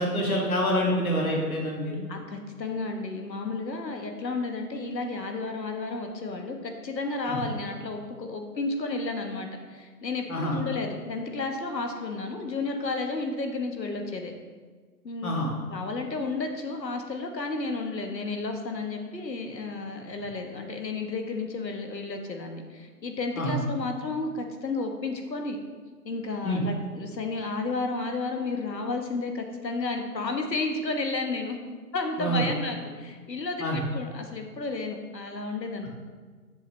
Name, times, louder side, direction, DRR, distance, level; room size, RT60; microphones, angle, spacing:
voice 1, 0.0-2.0 7.3-7.4 10.3-10.5 15.2-15.5 23.4-23.6 26.4-26.6 32.2-32.4 33.6-33.8, equal, 60° left, -2 dB, 1.8 m, -26 dB
voice 2, 2.1-14.3 15.0-25.6 26.0-31.6 31.9-35.9, left 3 dB, 85° left, 4 dB, 1.4 m, -32 dB
7.5 x 6.7 x 3.3 m, 1.5 s
hypercardioid pair, 175°, 49 cm